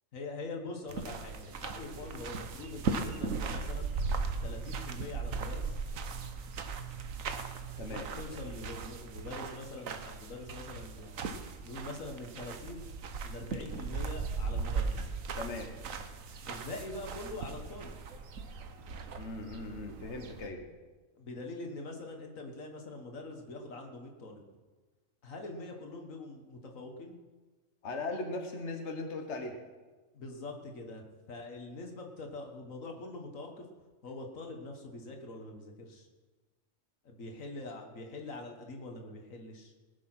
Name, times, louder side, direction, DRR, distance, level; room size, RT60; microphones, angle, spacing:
voice 1, 0.1-3.9 4.4-5.8 7.9-11.4 11.6-12.8 13.2-15.1 16.4-18.0 21.2-24.4 25.2-27.2 30.1-33.7 34.0-36.1 37.0-39.7, left 2 dB, 80° left, 3 dB, 2.0 m, -44 dB
sound 1, 0.9-20.5, right 4 dB, 90° right, 1.4 m, -38 dB
voice 2, 15.3-15.7 19.2-20.6 27.8-29.6, left 2 dB, 60° left, 4 dB, 1.7 m, -38 dB
20.0 x 7.4 x 6.0 m, 1.3 s
omnidirectional pair, 1.4 m